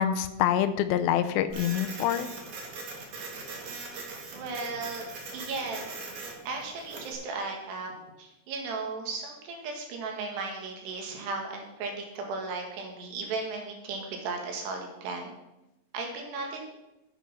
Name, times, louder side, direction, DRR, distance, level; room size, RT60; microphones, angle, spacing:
voice 1, 0.0-2.3, left 10 dB, 80° left, 11 dB, 2.4 m, -26 dB
Printer, 1.5-7.1, right 3 dB, 55° right, 2.9 m, -41 dB
voice 2, 4.3-5.0 5.3-5.9 6.5-7.9 8.2-15.3 15.9-16.6, right 3 dB, 85° right, 2 dB, 4.0 m, -35 dB
9.6 x 9.0 x 5.6 m, 0.95 s
omnidirectional pair, 4.7 m